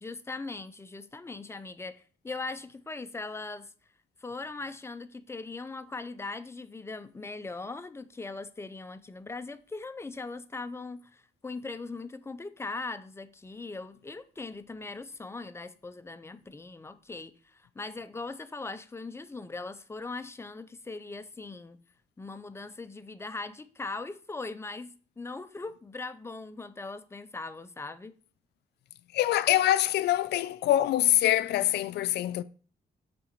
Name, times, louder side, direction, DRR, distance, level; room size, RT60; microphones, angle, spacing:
voice 1, 0.0-3.7 4.2-21.8 22.2-28.1, left 3 dB, 15° left, 0.5 m, -40 dB
voice 2, 29.1-32.4, left 13 dB, 85° left, 0.4 m, -24 dB
7.7 x 3.8 x 4.5 m
cardioid pair, 110°, 17 cm